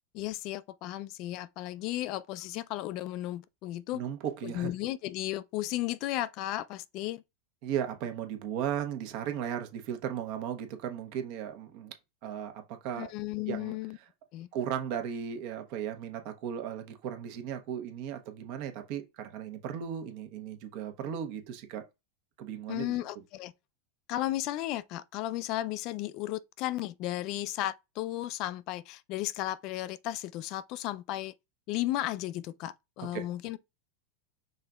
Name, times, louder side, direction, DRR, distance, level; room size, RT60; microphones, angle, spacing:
voice 1, 0.1-4.0 4.4-7.2 13.0-14.0 14.3-14.5 22.7-23.5 24.1-31.3 31.7-33.6, left 15 dB, 45° left, 0.3 m, -34 dB
voice 2, 3.9-4.7 7.6-11.9 12.2-13.1 13.5-13.7 14.5-21.8 22.4-23.0 33.1-33.3, right 9 dB, 55° right, 1.0 m, -36 dB
5.5 x 3.8 x 2.3 m
supercardioid pair, 140°, 0 cm